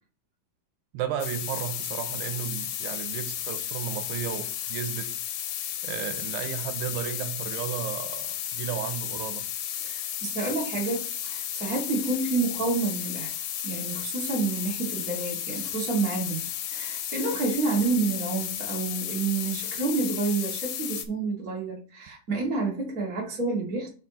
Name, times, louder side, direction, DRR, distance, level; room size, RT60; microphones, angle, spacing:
voice 1, 0.9-5.1 5.8-9.5, right 10 dB, 85° right, 2.9 m, -34 dB
sound 1, 1.2-21.0, left 10 dB, 80° left, 2.8 m, -33 dB
voice 2, 9.8-13.3 13.6-16.4 16.7-23.9, right 3 dB, 30° right, 2.0 m, -29 dB
6.0 x 4.6 x 4.1 m
omnidirectional pair, 4.5 m